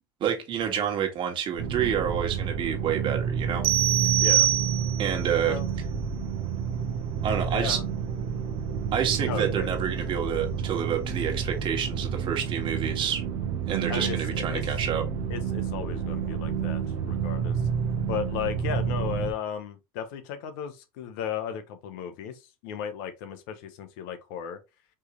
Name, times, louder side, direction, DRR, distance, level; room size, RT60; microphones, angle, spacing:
voice 1, 0.2-3.6 5.0-5.5 7.2-7.8 8.9-13.2 13.7-15.0, right 8 dB, 45° right, 1.6 m, -28 dB
sound 1, 1.6-19.3, right 7 dB, 65° right, 0.8 m, -30 dB
sound 2, 3.6-5.2, right 13 dB, 85° right, 0.4 m, -23 dB
voice 2, 4.2-4.5 5.4-5.7 7.3-7.9 9.2-9.7 13.9-14.6 15.3-17.6 18.1-24.6, left 8 dB, 75° left, 0.9 m, -35 dB
4.5 x 3.2 x 3.0 m
supercardioid pair, 95°, 12 cm